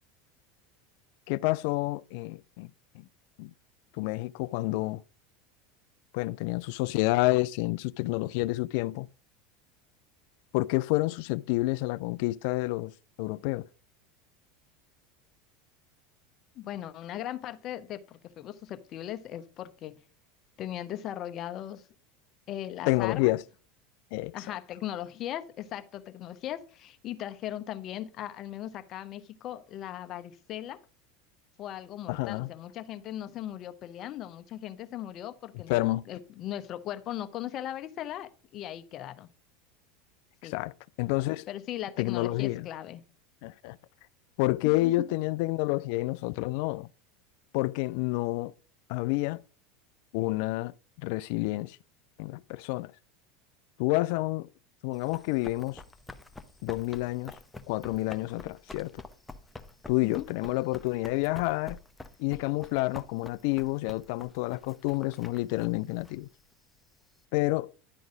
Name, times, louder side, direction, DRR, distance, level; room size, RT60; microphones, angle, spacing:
voice 1, 1.3-2.7 2.9-3.0 3.4-3.5 3.9-5.0 6.1-9.1 10.5-12.9 13.2-13.7 22.9-23.4 24.1-24.4 32.1-32.5 35.7-36.0 40.4-40.7 41.0-41.5 42.0-42.7 43.4-43.8 44.4-46.9 47.5-48.5 48.9-49.4 50.1-50.7 51.0-51.8 52.2-52.9 53.8-54.5 54.8-55.8 56.6-57.3 57.7-59.0 59.9-61.8 62.2-66.3 67.3-67.7, left 20 dB, 65° left, 0.3 m, -29 dB
voice 2, 16.5-20.0 20.6-21.9 22.5-23.3 24.3-30.8 31.6-35.8 36.1-39.3 40.4-40.6 41.5-43.0 44.6-45.0 60.0-60.3, left 12 dB, 45° left, 0.8 m, -38 dB
Run, 54.9-67.2, left 2 dB, 10° left, 0.8 m, -48 dB
10.5 x 3.9 x 5.0 m
hypercardioid pair, 85°, 0 cm